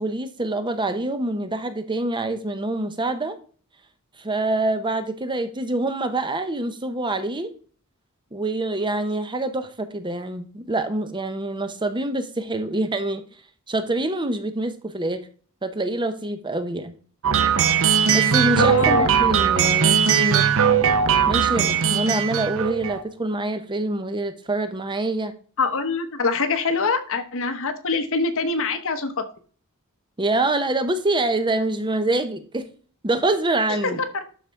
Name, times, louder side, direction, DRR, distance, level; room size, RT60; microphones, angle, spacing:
voice 1, 0.0-3.4 4.2-7.5 8.3-13.3 13.7-15.2 15.6-16.9 18.1-20.5 21.3-25.3 30.2-32.7 33.0-34.0, right 2 dB, 20° right, 9 dB, 0.8 m, -25 dB
sound 1, 17.2-23.0, right 7 dB, 65° right, 0.8 m, -19 dB
voice 2, 18.5-19.1 25.6-29.2 33.8-34.0, left 4 dB, 65° left, 9 dB, 1.1 m, -24 dB
12.0 x 4.1 x 4.6 m, 0.43 s
head